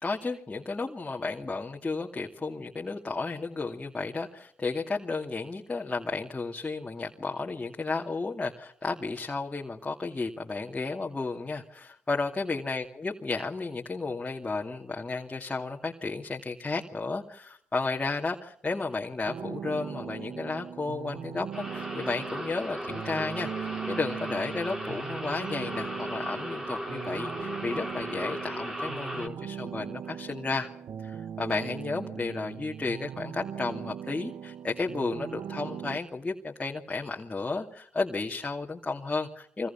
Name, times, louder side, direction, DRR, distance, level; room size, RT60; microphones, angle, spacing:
voice 1, 0.0-30.7 31.0-39.7, left 3 dB, 25° left, 0 dB, 2.5 m, -33 dB
sound 1, 19.2-36.0, right 8 dB, 65° right, 1.2 m, -39 dB
sound 2, 21.5-29.3, equal, 15° right, 4.2 m, -37 dB
30.0 x 24.0 x 5.9 m, 0.66 s
supercardioid pair, 65°, 5 cm